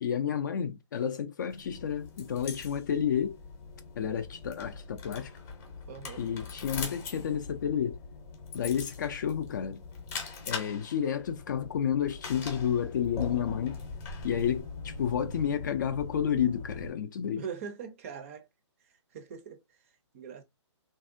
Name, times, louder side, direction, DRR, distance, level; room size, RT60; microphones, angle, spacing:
voice 1, 0.0-3.4 4.0-5.3 6.2-8.0 8.5-9.8 10.5-13.8 14.2-17.4, left 8 dB, 40° left, 0.4 m, -30 dB
sound 1, 1.5-16.9, left 4 dB, 15° left, 0.8 m, -41 dB
voice 2, 5.9-6.3 17.4-18.5 18.8-20.4, right 7 dB, 25° right, 0.5 m, -42 dB
3.3 x 2.6 x 2.5 m
hypercardioid pair, 160°, 16 cm